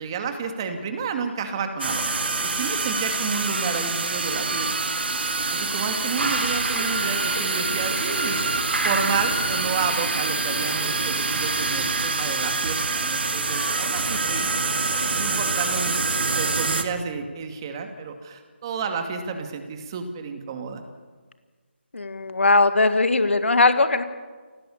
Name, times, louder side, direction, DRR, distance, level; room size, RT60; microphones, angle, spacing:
voice 1, 0.0-4.9 5.3-14.5 15.1-20.8, right 5 dB, 20° right, 6 dB, 2.3 m, -31 dB
sound 1, 1.8-16.8, right 3 dB, 60° right, 2.6 m, -26 dB
sound 2, 6.2-12.1, right 2 dB, 85° right, 5.8 m, -31 dB
voice 2, 21.9-24.0, left 3 dB, 80° left, 9 dB, 1.9 m, -19 dB
28.5 x 18.0 x 7.1 m, 1.5 s
figure-of-eight pair, 165°, 6 cm